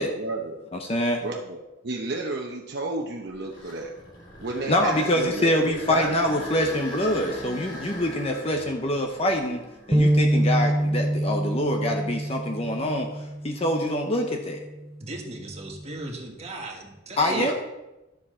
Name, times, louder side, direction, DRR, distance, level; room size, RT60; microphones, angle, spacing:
voice 1, 0.0-0.6 1.2-3.9 4.4-6.1 17.2-17.5, right 2 dB, 60° right, 1 dB, 0.9 m, -32 dB
voice 2, 0.7-1.2 4.7-9.6 9.9-13.1 13.4-14.6 17.2-17.5, left 1 dB, 30° left, 3 dB, 0.9 m, -25 dB
sound 1, 3.3-11.3 11.9-12.0 12.7-12.9 16.4-16.8, left 1 dB, 80° left, 3.4 m, -41 dB
sound 2, 9.9-14.2 14.7-14.9 15.7-16.2, right 1 dB, 15° right, 0.4 m, -25 dB
voice 3, 15.0-17.5, right 2 dB, 35° right, 1 dB, 1.5 m, -36 dB
12.0 x 7.3 x 4.4 m, 0.99 s
head